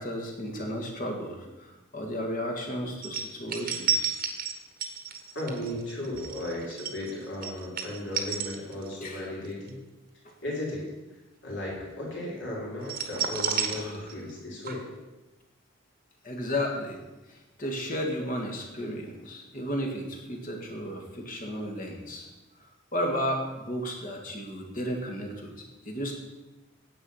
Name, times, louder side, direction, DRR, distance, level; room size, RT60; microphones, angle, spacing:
voice 1, 0.0-4.2 9.0-9.3 13.7-14.0 16.2-17.0 17.3-22.3 22.9-25.5 25.8-26.1, equal, 40° left, 1 dB, 1.8 m, -33 dB
sound 1, 3.0-9.1 9.4-9.7 12.8-14.4 14.6-14.7, right 7 dB, 40° right, 1.2 m, -31 dB
voice 2, 5.3-9.8 10.4-10.9 11.4-14.8, left 1 dB, 55° left, -4 dB, 3.6 m, -35 dB
9.9 x 7.9 x 5.6 m, 1.1 s
head